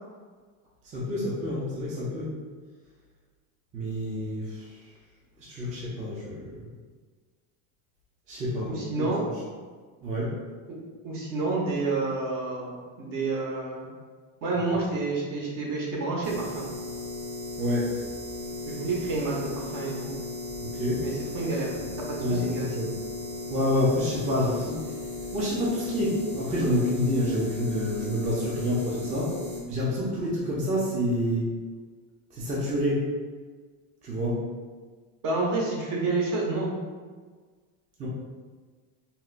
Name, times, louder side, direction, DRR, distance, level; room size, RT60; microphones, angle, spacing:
voice 1, 0.8-2.3 3.7-4.8 5.4-6.7 8.3-8.7 9.0-9.1 10.0-10.3 17.6-17.9 20.6-21.0 22.2-22.9 23.5-24.8 25.3-29.3 29.7-31.5 32.3-33.1 34.0-34.4 38.0-38.1, equal, 20° right, -5 dB, 0.4 m, -28 dB
voice 2, 8.7-9.2 10.7-10.8 11.0-13.9 14.4-16.7 18.7-20.1 21.0-22.7 35.2-36.7, right 3 dB, 55° right, -3 dB, 1.0 m, -29 dB
sound 1, 16.2-29.6, left 2 dB, 80° right, 1.4 m, -36 dB
4.1 x 2.2 x 2.4 m, 1.5 s
cardioid pair, 140°, 39 cm